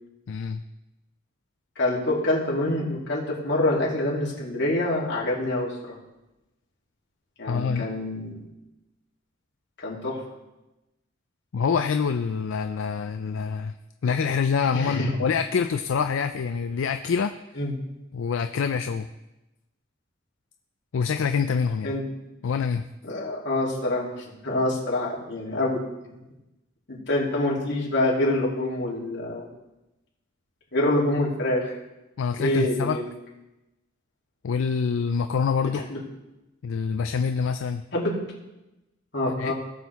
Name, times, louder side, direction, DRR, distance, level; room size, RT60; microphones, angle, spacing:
voice 1, 0.3-0.6 7.5-7.9 11.5-13.7 14.0-17.3 18.1-19.1 20.9-22.0 22.4-22.8 32.2-33.0 34.4-35.8 36.6-37.8 39.4-39.5, left 6 dB, 80° left, 8 dB, 0.4 m, -26 dB
voice 2, 1.8-6.0 7.4-8.4 9.8-10.2 14.7-15.1 17.6-17.7 21.8-22.0 23.0-25.8 26.0-26.2 26.9-29.5 30.7-31.7 32.4-33.0 35.7-36.0 37.9-38.1 39.1-39.5, left 1 dB, 60° left, -6 dB, 3.0 m, -26 dB
18.0 x 6.3 x 3.5 m, 0.98 s
head